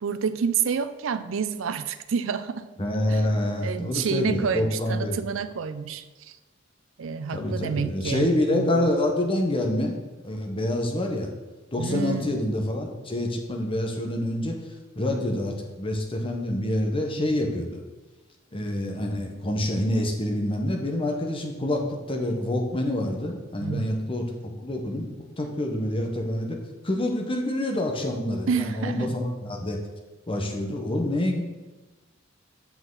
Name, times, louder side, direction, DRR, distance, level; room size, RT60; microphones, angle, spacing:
voice 1, 0.0-2.7 3.1-6.4 7.0-8.9 11.8-12.4 23.6-23.9 28.5-29.2, right 6 dB, 75° right, 12 dB, 0.4 m, -29 dB
voice 2, 2.8-5.2 7.3-9.9 10.2-11.3 11.7-14.6 15.0-17.8 18.5-25.1 25.4-26.6 26.8-29.8 30.3-31.4, left 1 dB, 25° left, 2 dB, 1.1 m, -27 dB
7.4 x 6.0 x 3.9 m, 1.1 s
head